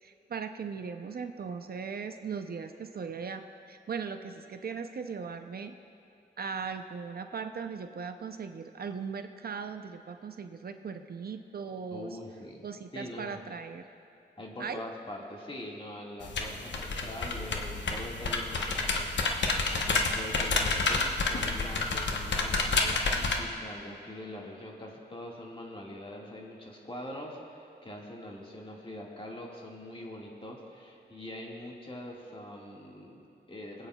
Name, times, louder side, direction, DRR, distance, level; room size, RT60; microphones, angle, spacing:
voice 1, 0.0-5.7 6.4-12.2 12.6-13.9 14.6-14.8, right 5 dB, 60° right, 8 dB, 0.5 m, -38 dB
voice 2, 11.9-12.6 12.9-13.4 14.4-33.9, left 1 dB, 30° left, -2 dB, 1.8 m, -43 dB
sound 1, 16.2-23.4, left 3 dB, 80° left, 0.9 m, -29 dB
25.0 x 8.8 x 2.3 m, 2.8 s
wide cardioid pair, 75°, 18 cm